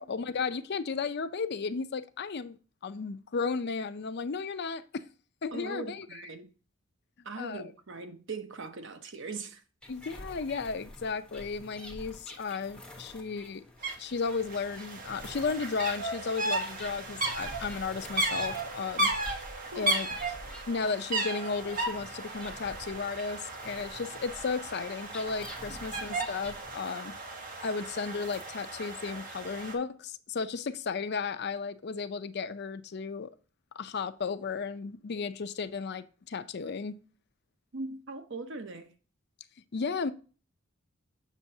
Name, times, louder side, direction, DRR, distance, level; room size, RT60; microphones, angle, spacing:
voice 1, 0.0-2.6 2.8-5.1 5.4-6.1 7.4-7.7 9.9-13.6 14.0-19.1 19.8-20.1 20.7-27.1 27.6-33.3 33.8-37.0 39.7-40.1, left 5 dB, 55° left, 0.5 m, -34 dB
voice 2, 5.5-6.5 7.2-9.6 19.7-20.0 25.7-26.0 37.7-38.9, right 3 dB, 65° right, 0.9 m, -40 dB
sound 1, 9.8-26.8, left 1 dB, 5° left, 1.1 m, -49 dB
sound 2, 13.8-13.9 14.2-29.7, right 2 dB, 45° right, 1.3 m, -35 dB
7.3 x 6.3 x 2.7 m
head